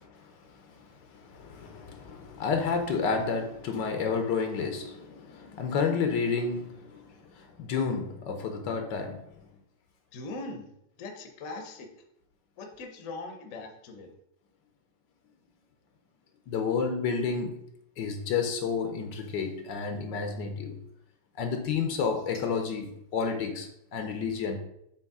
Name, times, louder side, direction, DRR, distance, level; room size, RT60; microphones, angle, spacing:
voice 1, 0.1-9.2 16.5-17.6 18.0-20.8 21.4-24.6, left 5 dB, 70° left, 5 dB, 1.4 m, -31 dB
voice 2, 10.1-10.7 11.0-11.9 12.6-14.1, left 3 dB, 55° left, 4 dB, 1.1 m, -40 dB
7.1 x 3.3 x 4.7 m, 0.77 s
omnidirectional pair, 2.0 m